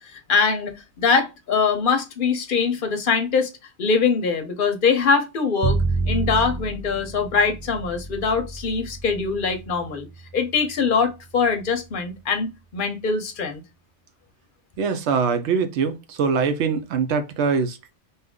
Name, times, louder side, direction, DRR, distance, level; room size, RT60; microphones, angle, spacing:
voice 1, 0.0-3.5 3.8-5.8 6.1-10.1 10.3-13.6, left 5 dB, 55° left, 0.7 m, -22 dB
Bowed string instrument, 5.6-11.7, right 3 dB, 30° right, 0.4 m, -29 dB
voice 2, 14.8-18.0, right 5 dB, 75° right, 0.9 m, -23 dB
2.7 x 2.4 x 3.5 m
omnidirectional pair, 1.2 m